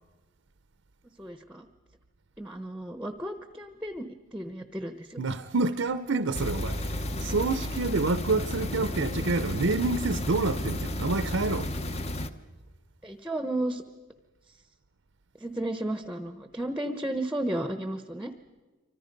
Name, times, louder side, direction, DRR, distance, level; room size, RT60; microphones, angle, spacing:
voice 1, 1.2-1.7 2.4-5.2 13.0-13.8 15.4-18.3, right 1 dB, 5° right, 0.9 m, -33 dB
voice 2, 5.2-11.7, right 3 dB, 70° right, 0.7 m, -28 dB
sound 1, 6.3-12.3, left 1 dB, 30° left, 0.9 m, -32 dB
27.5 x 25.0 x 5.3 m
head